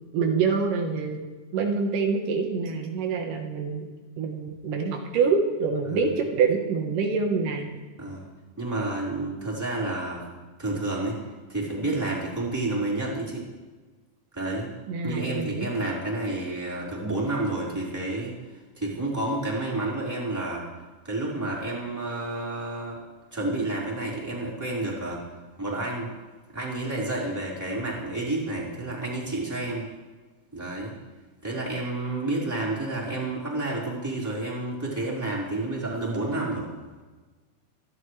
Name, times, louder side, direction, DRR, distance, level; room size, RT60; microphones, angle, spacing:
voice 1, 0.1-1.2 1.5-3.9 4.2-7.7 14.9-15.7, right 5 dB, 80° right, 3 dB, 2.9 m, -26 dB
voice 2, 8.6-10.2 10.6-11.2 11.5-13.5 14.3-14.7 15.0-18.3 18.8-20.7 21.0-23.0 23.3-25.2 25.6-26.1 26.5-29.9 30.5-30.9 31.4-36.7, right 2 dB, 5° right, -6 dB, 4.1 m, -30 dB
26.5 x 11.5 x 3.2 m, 1.3 s
omnidirectional pair, 3.7 m